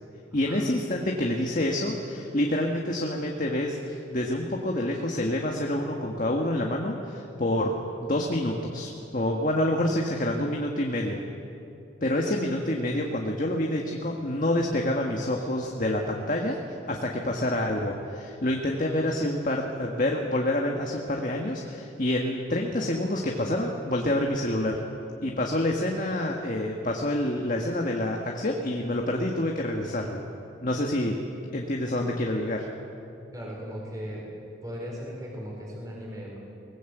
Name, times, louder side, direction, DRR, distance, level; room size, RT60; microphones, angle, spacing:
voice 1, 0.3-7.7 8.0-11.2 12.0-24.8 25.2-30.2 30.6-31.1 31.5-32.7, left 1 dB, 45° left, 0 dB, 1.6 m, -27 dB
voice 2, 33.3-34.2 34.6-36.4, equal, 20° right, -3 dB, 4.6 m, -37 dB
21.5 x 20.0 x 8.1 m, 2.9 s
head